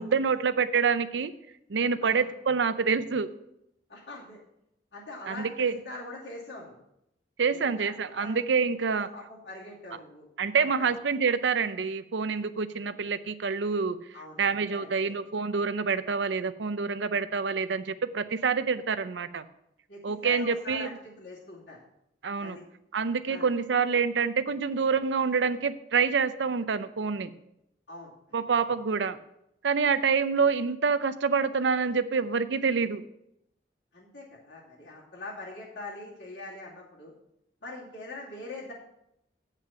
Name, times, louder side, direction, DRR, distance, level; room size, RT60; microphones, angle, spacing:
voice 1, 0.0-1.3 1.7-3.3 5.3-5.7 7.4-9.1 10.4-14.0 14.4-19.4 20.0-20.9 22.2-22.6 22.9-27.3 28.3-29.2 29.6-33.0, right 5 dB, 90° right, 12 dB, 0.6 m, -27 dB
voice 2, 3.9-4.4 4.9-6.8 7.5-8.4 8.9-10.3 10.6-10.9 14.1-15.1 19.9-21.8 22.4-22.6 23.3-23.5 27.9-28.1 33.9-37.1 37.6-38.7, left 2 dB, 80° left, -7 dB, 2.7 m, -43 dB
8.5 x 5.7 x 7.0 m, 0.80 s
head